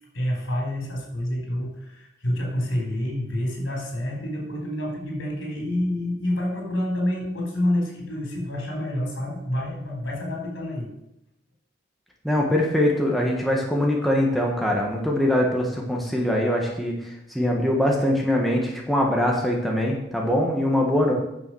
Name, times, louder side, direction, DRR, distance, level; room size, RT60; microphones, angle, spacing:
voice 1, 0.1-10.9, left 1 dB, 90° left, 0 dB, 4.1 m, -28 dB
voice 2, 12.2-21.1, left 1 dB, ahead, -2 dB, 1.5 m, -23 dB
9.8 x 6.8 x 6.3 m, 0.86 s
head